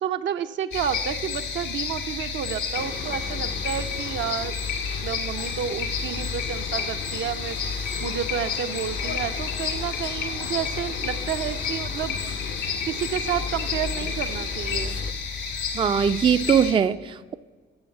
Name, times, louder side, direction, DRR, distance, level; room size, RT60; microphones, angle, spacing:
voice 1, 0.0-4.6 5.0-7.6 8.0-12.2 12.9-15.0, right 9 dB, 70° right, 9 dB, 0.6 m, -30 dB
sound 1, 0.7-16.7, left 6 dB, 85° left, 1.9 m, -31 dB
sound 2, 2.7-15.1, left 5 dB, 65° left, 0.6 m, -35 dB
voice 2, 15.7-17.3, right 7 dB, 25° right, 12 dB, 0.3 m, -21 dB
9.5 x 6.5 x 7.0 m, 1.4 s
cardioid pair, 90°, 20 cm